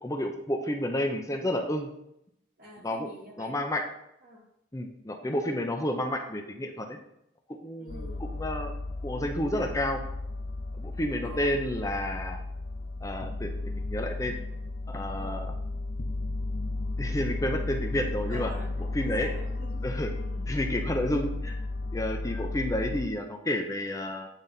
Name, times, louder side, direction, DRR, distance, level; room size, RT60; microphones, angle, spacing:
voice 1, 0.0-1.9 2.8-3.1 3.4-3.8 4.7-7.0 7.5-8.7 9.0-10.0 10.8-12.4 13.0-13.5 13.9-14.3 14.9-15.5 17.0-18.5 18.9-19.3 19.8-20.1 20.5-21.6 21.9-24.3, left 1 dB, 20° left, 3 dB, 0.7 m, -30 dB
voice 2, 2.6-3.5 4.2-4.5 7.8-8.3 11.2-11.6 15.2-15.5 18.3-19.9 20.1-20.5, equal, 50° right, -3 dB, 2.3 m, -46 dB
sound 1, 7.9-23.1, left 2 dB, 60° left, 0.6 m, -34 dB
9.0 x 4.0 x 5.7 m, 0.78 s
head